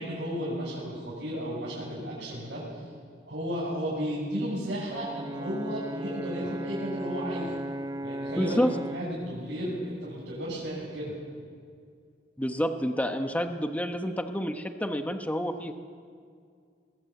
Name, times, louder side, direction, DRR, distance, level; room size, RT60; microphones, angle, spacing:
voice 1, 0.0-2.9 3.3-7.6 8.0-8.6 8.9-11.2, equal, 65° right, -7 dB, 7.1 m, -34 dB
Brass instrument, 4.9-9.1, right 1 dB, 20° right, 0.5 m, -36 dB
voice 2, 8.4-8.7 12.4-15.7, equal, 10° left, 6 dB, 1.1 m, -28 dB
23.5 x 21.0 x 8.4 m, 2.2 s
head